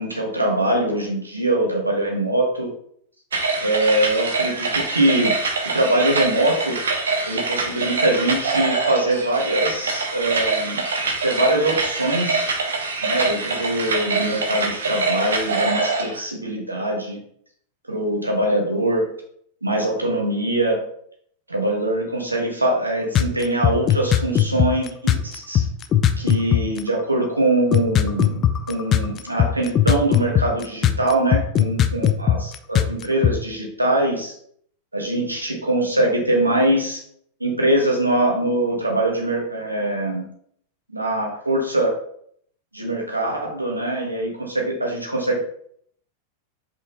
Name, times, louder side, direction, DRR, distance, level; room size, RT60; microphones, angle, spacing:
voice 1, 0.0-2.7 3.6-5.3 5.6-6.8 7.3-10.8 11.2-12.5 13.0-17.2 17.9-19.1 19.6-20.8 21.5-25.6 26.2-34.3 34.9-37.0 37.4-40.3 40.9-41.9 42.7-45.4, right 1 dB, 85° right, 0 dB, 1.6 m, -22 dB
sound 1, 3.3-16.2, right 3 dB, 65° right, 1.1 m, -24 dB
sound 2, 23.2-26.8 27.2-27.3 27.7-33.3, left 10 dB, 30° left, 0.5 m, -17 dB
5.3 x 5.0 x 4.0 m, 0.64 s
figure-of-eight pair, 90°, 0 cm